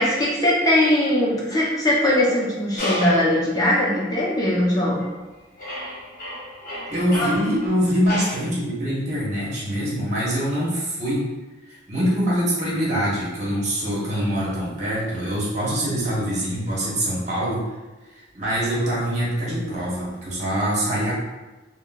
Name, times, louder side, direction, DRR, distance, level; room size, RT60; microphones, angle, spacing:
voice 1, 0.0-5.0 7.1-7.3, left 1 dB, 20° left, -5 dB, 0.6 m, -20 dB
sound 1, 2.8-3.4 4.1-4.2 4.9-5.3 5.6-8.5, left 1 dB, 45° left, 1.0 m, -32 dB
voice 2, 6.9-11.2 11.7-17.6 18.1-21.1, equal, 40° right, -7 dB, 0.9 m, -24 dB
3.6 x 2.0 x 2.3 m, 1.2 s
head